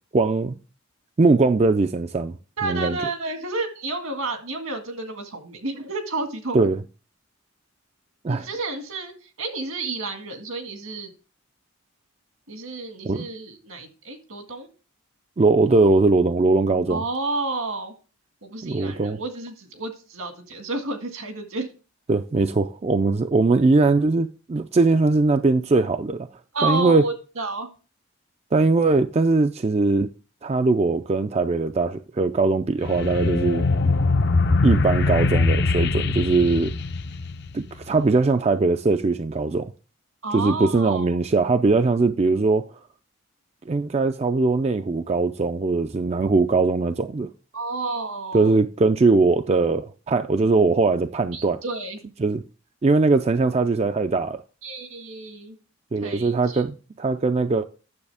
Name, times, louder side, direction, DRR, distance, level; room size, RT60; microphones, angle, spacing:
voice 1, 0.1-0.6 1.2-2.3 2.6-3.0 6.5-6.8 8.2-8.5 13.0-13.3 15.4-17.0 18.6-19.2 22.1-26.3 26.6-27.1 28.5-30.1 30.4-33.7 34.6-36.7 37.5-39.7 40.3-42.7 43.7-47.3 48.3-51.6 52.2-52.4 52.8-54.4 55.9-57.6, right 3 dB, 30° right, 0.3 m, -20 dB
voice 2, 2.6-6.6 8.3-11.1 12.5-14.7 16.9-17.9 18.4-21.7 26.5-27.7 40.2-41.2 47.5-48.6 51.3-52.0 54.6-55.6 56.0-56.6, right 3 dB, 80° right, 1.8 m, -31 dB
sound 1, 32.8-37.8, left 3 dB, 50° left, 0.6 m, -22 dB
9.6 x 7.3 x 3.4 m
head